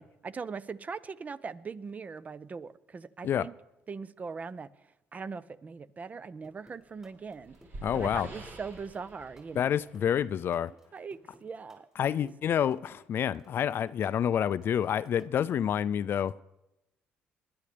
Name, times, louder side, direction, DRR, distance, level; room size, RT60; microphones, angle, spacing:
voice 1, 0.0-3.5 3.9-4.7 5.1-7.6 7.9-9.8 10.7-11.9 12.2-12.6, right 5 dB, 35° right, 0.6 m, -41 dB
sound 1, 6.4-15.7, right 1 dB, 15° right, 4.7 m, -57 dB
sound 2, 6.9-10.6, right 2 dB, 55° right, 3.1 m, -47 dB
voice 2, 7.8-8.3 9.6-10.7 12.0-16.3, left 9 dB, 55° left, 0.4 m, -28 dB
20.5 x 10.5 x 3.4 m
supercardioid pair, 75°, 4 cm